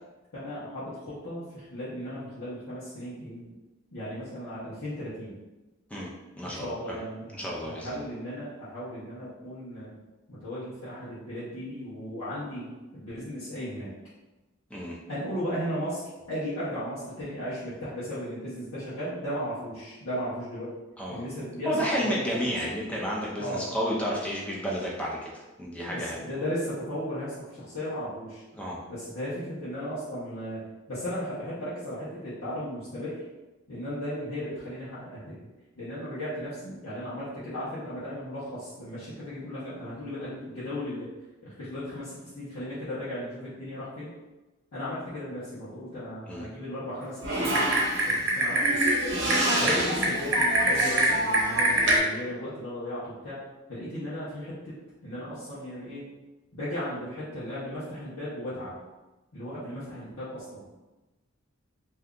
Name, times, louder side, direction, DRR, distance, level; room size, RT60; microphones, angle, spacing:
voice 1, 0.3-3.5 3.9-5.3 6.4-9.9 10.3-13.9 15.1-20.8 21.1-22.2 23.4-23.7 25.8-28.4 28.9-30.6 30.9-33.2 33.7-35.4 35.8-41.1 41.4-44.1 44.7-48.8 49.6-53.4 53.7-54.8 55.0-56.1 56.5-58.7 59.3-60.6, equal, 90° left, -12 dB, 1.0 m, -36 dB
voice 2, 6.4-7.0 7.3-8.0 14.7-15.0 21.0-21.2 21.7-26.2 28.5-28.8 46.3-46.5 49.6-49.8, equal, 5° left, -4 dB, 0.6 m, -31 dB
Typing, 47.2-52.0, right 1 dB, 55° right, 0.7 m, -24 dB
2.7 x 2.3 x 3.6 m, 1.1 s
head